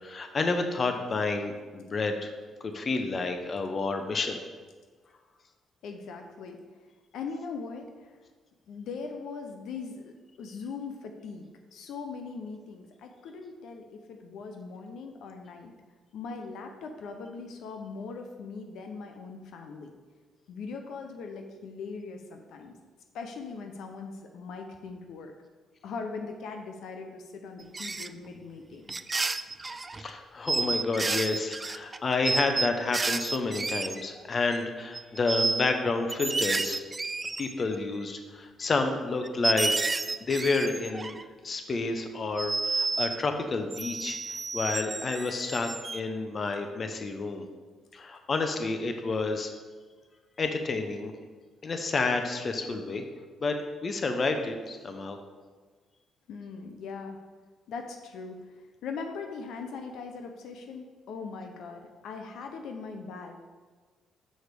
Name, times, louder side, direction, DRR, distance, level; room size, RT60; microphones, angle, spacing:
voice 1, 0.0-2.3 2.6-4.4 29.9-36.8 37.4-39.7 40.2-41.2 41.4-47.5 47.9-49.5 50.4-51.1 51.6-53.0 53.4-55.2, left 3 dB, 40° left, 6 dB, 0.9 m, -30 dB
voice 2, 5.8-6.6 7.1-8.1 8.7-11.5 11.7-15.7 16.1-19.9 20.5-22.7 23.1-25.3 25.8-29.0 56.3-57.2 57.7-58.4 58.8-63.4, left 4 dB, 80° left, 4 dB, 0.8 m, -40 dB
sound 1, 27.7-28.1 28.9-30.1 30.5-34.2 34.5-34.6 34.9-35.7 36.1-37.8 38.6-38.7 39.2-41.2 42.4-43.2 43.7-46.0, right 3 dB, 25° right, 0.3 m, -31 dB
6.5 x 4.7 x 6.8 m, 1.4 s
cardioid pair, 90°, 0 cm